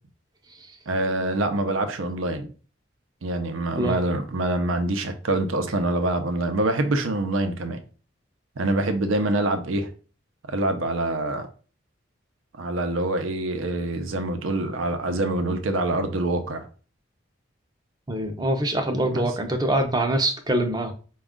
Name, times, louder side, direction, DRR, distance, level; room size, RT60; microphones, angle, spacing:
voice 1, 0.9-2.5 3.2-7.8 8.6-9.9 10.5-11.5 12.6-16.7 19.1-19.3, right 2 dB, 85° right, 0.6 m, -25 dB
voice 2, 18.1-20.9, right 1 dB, 20° right, 0.5 m, -24 dB
5.0 x 2.3 x 3.6 m
head